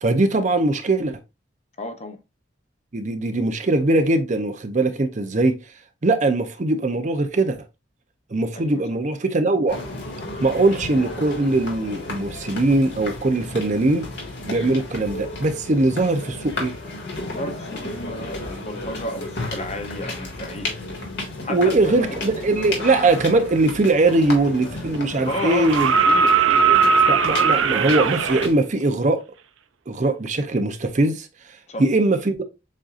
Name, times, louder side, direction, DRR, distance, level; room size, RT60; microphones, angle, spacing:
voice 1, 0.0-1.2 2.9-5.6 6.0-7.6 8.3-9.8 10.4-14.1 14.5-16.7 21.5-25.9 27.1-29.2 29.9-31.3 31.8-32.4, right 2 dB, 40° right, 0.6 m, -21 dB
voice 2, 1.8-2.2 8.5-8.8 17.3-20.7 21.4-22.5 25.3-25.8 26.1-26.9 31.7-31.8, left 1 dB, 35° left, 0.7 m, -32 dB
sound 1, 9.7-28.5, left 2 dB, 60° left, 1.8 m, -33 dB
sound 2, 24.2-24.3 25.3-28.5 30.3-30.4, right 5 dB, 85° right, 0.5 m, -18 dB
7.4 x 2.7 x 2.4 m
head